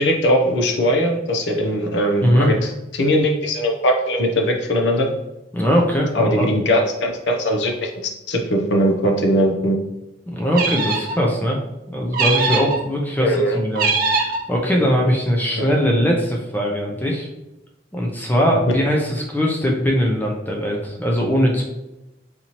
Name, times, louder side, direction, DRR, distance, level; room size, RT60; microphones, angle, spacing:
voice 1, 0.0-5.1 6.1-7.9 8.3-9.8 13.2-13.6 15.5-15.7, equal, 70° left, 2 dB, 0.5 m, -20 dB
voice 2, 2.2-2.5 5.5-6.5 10.3-11.6 11.9-17.3 17.9-21.6, equal, 10° left, -1 dB, 0.5 m, -20 dB
sound 1, 10.5-11.2 12.1-12.8 13.7-14.4, right 4 dB, 50° right, 0.5 m, -21 dB
4.1 x 2.7 x 2.9 m, 0.95 s
head